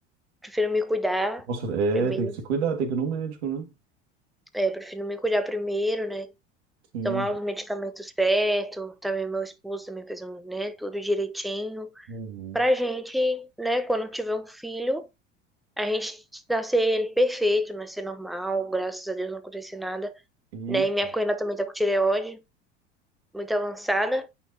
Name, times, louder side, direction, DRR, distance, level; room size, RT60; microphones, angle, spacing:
voice 1, 0.4-1.5 1.9-2.3 4.5-6.3 7.0-12.1 12.5-15.1 15.8-20.1 20.7-22.4 23.3-24.3, equal, ahead, 0.8 m, -27 dB
voice 2, 1.5-3.7 6.9-7.3 12.1-12.6 20.5-20.9, right 5 dB, 70° right, 1.9 m, -28 dB
9.6 x 4.3 x 2.7 m
hypercardioid pair, 75°, 34 cm